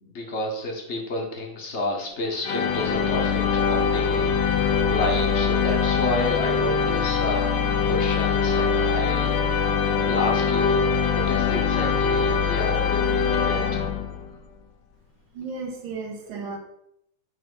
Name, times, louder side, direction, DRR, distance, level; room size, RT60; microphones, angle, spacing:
voice 1, 0.0-7.5 7.8-9.3 10.0-10.9 11.1-13.6, left 1 dB, 40° left, 1 dB, 1.1 m, -30 dB
Church Pipe Organ Chord, 2.4-14.4, left 6 dB, 70° left, 1.2 m, -23 dB
voice 2, 15.3-16.6, right 4 dB, 70° right, 3 dB, 1.7 m, -34 dB
5.7 x 3.4 x 5.3 m, 0.77 s
omnidirectional pair, 2.3 m